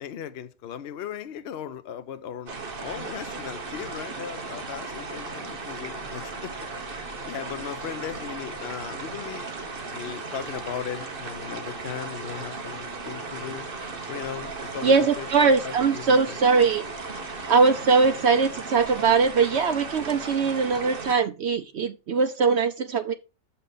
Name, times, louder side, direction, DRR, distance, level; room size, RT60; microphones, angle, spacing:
voice 1, 0.0-9.5 9.9-13.7 14.1-15.3 15.6-16.4, left 9 dB, 55° left, 0.7 m, -37 dB
sound 1, 2.5-21.2, right 3 dB, 35° right, 1.3 m, -36 dB
voice 2, 14.8-16.8 17.5-23.1, right 5 dB, 70° right, 0.6 m, -21 dB
6.9 x 5.6 x 3.9 m
omnidirectional pair, 1.7 m